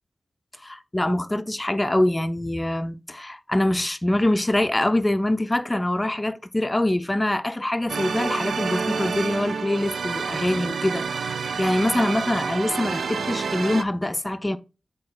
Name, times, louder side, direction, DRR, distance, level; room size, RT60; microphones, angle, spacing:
voice 1, 0.6-14.6, left 1 dB, 20° left, 0.5 m, -24 dB
sound 1, 7.9-13.8, right 5 dB, 90° right, 0.3 m, -28 dB
7.8 x 3.7 x 3.8 m
cardioid pair, 65°, 0 cm